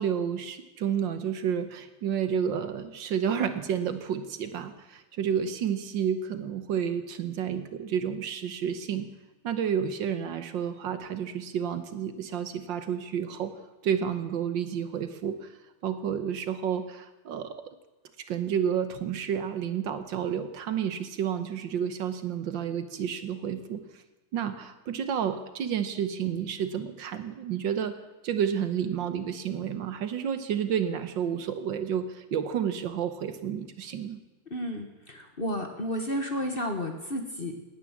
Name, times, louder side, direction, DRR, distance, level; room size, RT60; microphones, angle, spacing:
voice 1, 0.0-9.1 9.4-13.5 13.8-15.5 15.8-17.6 18.3-23.8 24.3-28.0 28.2-34.2, right 8 dB, 70° right, 10 dB, 1.6 m, -30 dB
voice 2, 34.5-37.5, equal, 30° left, 4 dB, 1.4 m, -32 dB
18.5 x 10.0 x 7.3 m, 1.1 s
omnidirectional pair, 2.2 m